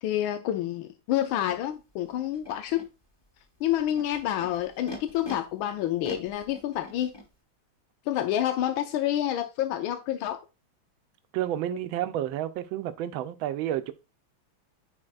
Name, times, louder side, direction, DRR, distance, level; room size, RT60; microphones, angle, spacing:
voice 1, 0.0-2.9 3.6-7.1 8.1-10.4 11.7-11.8, left 12 dB, 85° left, 1.4 m, -28 dB
Animal, 1.5-1.6 2.3-2.8 3.7-5.3 6.0-7.3, left 2 dB, 20° left, 0.7 m, -41 dB
voice 2, 11.3-13.9, right 12 dB, 85° right, 1.4 m, -30 dB
9.8 x 4.7 x 2.4 m
omnidirectional pair, 2.2 m